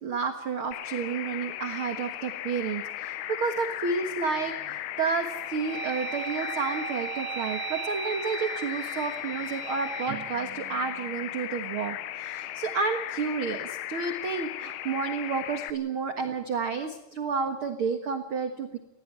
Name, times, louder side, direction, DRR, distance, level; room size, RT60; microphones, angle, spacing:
voice 1, 0.0-18.8, right 5 dB, 65° right, 6 dB, 1.3 m, -31 dB
sound 1, 0.7-15.7, left 14 dB, 80° left, 2.9 m, -37 dB
sound 2, 4.4-4.8 5.3-11.5, right 9 dB, 80° right, 1.4 m, -38 dB
20.5 x 16.5 x 8.8 m, 0.91 s
omnidirectional pair, 4.7 m